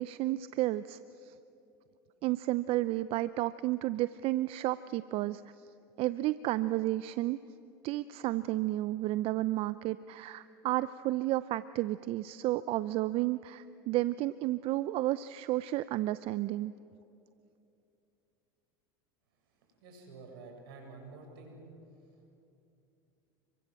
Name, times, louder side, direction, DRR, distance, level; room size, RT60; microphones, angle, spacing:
voice 1, 0.0-1.3 2.2-5.4 6.0-7.4 7.8-16.7, right 16 dB, 55° right, 15 dB, 0.6 m, -32 dB
voice 2, 19.8-21.6, right 3 dB, 75° right, 3 dB, 7.2 m, -49 dB
30.0 x 23.0 x 7.6 m, 2.7 s
hypercardioid pair, 95°, 12 cm